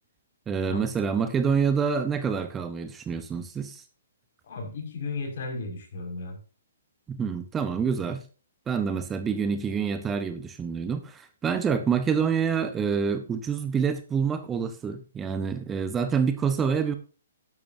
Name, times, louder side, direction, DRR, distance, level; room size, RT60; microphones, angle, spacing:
voice 1, 0.5-3.8 7.1-8.2 8.7-16.9, right 6 dB, 15° right, 10 dB, 1.0 m, -27 dB
voice 2, 4.4-6.4, left 3 dB, 55° left, 2 dB, 5.6 m, -34 dB
13.5 x 11.0 x 2.7 m, 0.35 s
figure-of-eight pair, 130°, 0 cm